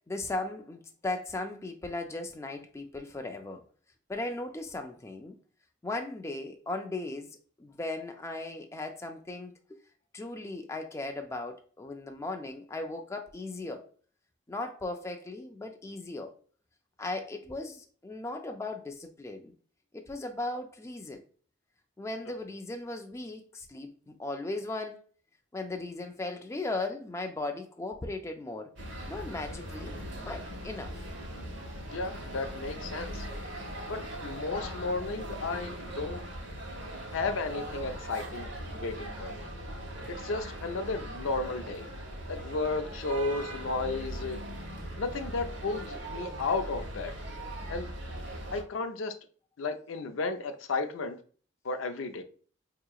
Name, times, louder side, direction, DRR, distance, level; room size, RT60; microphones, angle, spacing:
voice 1, 0.0-3.6 4.1-5.4 5.8-9.8 10.1-13.9 14.5-16.3 17.0-19.5 19.9-21.2 22.0-25.0 25.5-28.7 29.1-31.1, left 2 dB, 15° left, 0.3 m, -37 dB
sound 1, 28.8-48.6, right 1 dB, 60° right, 1.1 m, -40 dB
voice 2, 31.9-33.3 33.9-36.2 37.1-39.5 40.2-41.9 42.3-44.4 45.0-47.1 47.7-47.9 48.5-49.1 49.6-51.2 51.6-52.2, left 3 dB, 75° left, 0.5 m, -33 dB
4.6 x 2.8 x 2.3 m
head